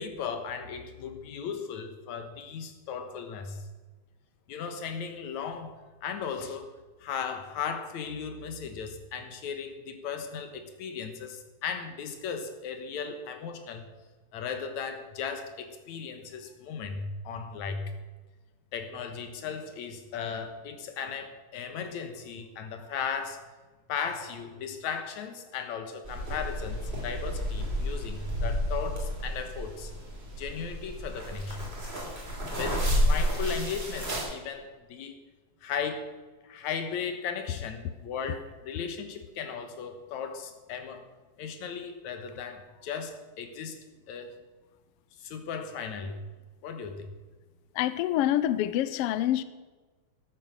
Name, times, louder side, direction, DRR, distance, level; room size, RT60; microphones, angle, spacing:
voice 1, 0.0-3.6 4.5-5.7 6.0-6.7 7.0-13.9 14.3-17.9 18.7-23.4 23.9-30.0 30.4-31.7 32.5-35.2 35.6-36.1 36.4-41.0 41.4-43.8 44.1-44.4 45.2-46.2 46.6-47.1, left 6 dB, 70° left, 7 dB, 2.6 m, -36 dB
sound 1, 26.0-34.2, equal, 20° right, 3.9 m, -31 dB
voice 2, 47.7-49.4, left 12 dB, 90° left, 14 dB, 1.3 m, -26 dB
13.5 x 9.8 x 6.4 m, 1.3 s
omnidirectional pair, 3.5 m